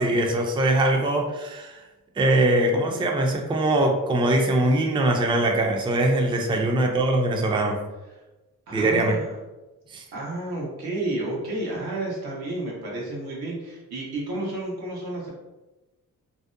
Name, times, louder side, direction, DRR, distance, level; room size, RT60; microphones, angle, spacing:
voice 1, 0.0-1.8 2.2-7.8 8.7-9.2 9.9-10.0, right 1 dB, 15° right, 2 dB, 0.4 m, -22 dB
voice 2, 8.7-9.3 10.1-15.3, right 2 dB, 90° right, -4 dB, 0.9 m, -31 dB
2.6 x 2.1 x 2.4 m, 1.1 s
cardioid pair, 65°, 36 cm